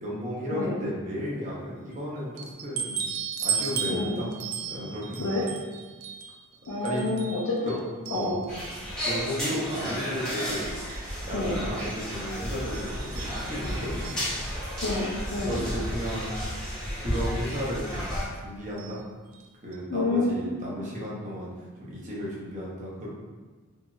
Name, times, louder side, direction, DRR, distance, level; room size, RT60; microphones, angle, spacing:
voice 1, 0.0-3.0 3.4-4.3 4.7-5.3 6.8-7.0 7.6-7.7 8.1-8.5 9.0-10.7 11.2-14.4 15.4-16.3 17.0-19.0 19.6-21.5 21.8-23.1, equal, 35° right, -5 dB, 0.7 m, -34 dB
sound 1, 2.4-8.7 9.1-10.1 10.5-11.1 11.8-11.9 12.2-12.3 12.7-14.7 15.7-15.8 16.2-16.3 17.5-17.7 18.8-19.0 19.3-19.4 19.7-19.8, right 7 dB, 70° right, 0.3 m, -36 dB
voice 2, 3.9-4.2 5.2-5.4 6.7-7.8 8.1-8.4 11.3-11.6 14.8-15.6 19.9-20.8, left 2 dB, 90° left, -6 dB, 0.5 m, -29 dB
sound 2, 8.5-18.3, equal, 5° left, 0.7 m, -33 dB
2.9 x 2.7 x 2.3 m, 1.3 s
head